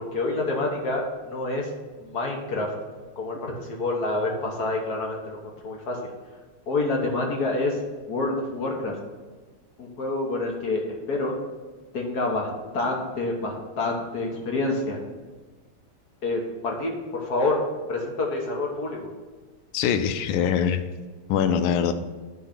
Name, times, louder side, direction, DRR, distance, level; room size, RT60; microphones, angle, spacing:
voice 1, 0.0-1.7 2.0-2.7 3.2-6.1 6.7-7.8 8.1-8.9 9.8-11.3 11.9-12.5 12.7-15.0 16.2-17.6 17.9-19.1, left 2 dB, 55° left, 0 dB, 1.5 m, -27 dB
voice 2, 19.7-20.8 21.3-21.9, left 8 dB, 80° left, 9 dB, 1.5 m, -23 dB
9.6 x 3.8 x 5.9 m, 1.3 s
omnidirectional pair, 2.4 m